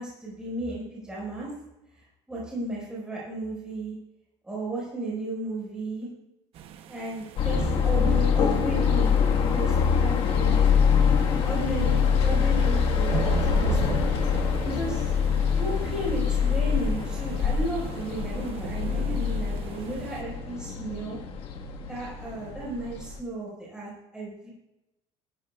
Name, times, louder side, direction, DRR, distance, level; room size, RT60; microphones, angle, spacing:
voice 1, 0.0-1.5 2.3-4.0 4.4-6.1 6.9-9.1 9.5-10.9 11.4-12.0 12.2-13.8 14.6-15.1 15.5-21.2 21.9-24.5, right 1 dB, 5° right, -6 dB, 5.0 m, -34 dB
sound 1, 6.5-20.2, right 8 dB, 55° right, 0.8 m, -39 dB
sound 2, 7.4-23.2, left 6 dB, 55° left, 1.6 m, -24 dB
19.5 x 13.0 x 2.4 m, 0.91 s
cardioid pair, 165°, 12 cm